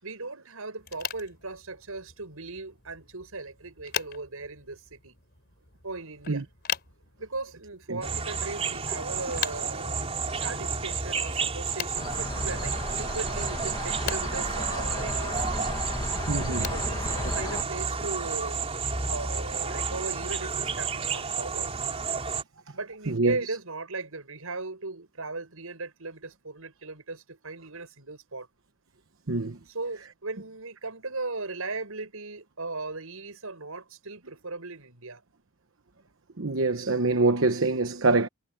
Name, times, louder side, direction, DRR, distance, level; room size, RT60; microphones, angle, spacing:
voice 1, 0.0-5.2 5.8-6.4 7.2-10.0 10.4-15.4 16.6-18.6 19.1-21.7 22.7-28.5 29.7-35.2, right 3 dB, 85° right, 5.8 m, -37 dB
sound 1, 0.8-18.1, left 8 dB, 50° left, 3.5 m, -41 dB
sound 2, 8.0-22.4, right 5 dB, 30° right, 3.7 m, -31 dB
sound 3, 11.9-17.6, left 1 dB, 20° left, 1.4 m, -35 dB
voice 2, 16.3-16.6 23.1-23.4 29.3-29.6 36.4-38.3, right 3 dB, 65° right, 1.0 m, -25 dB
head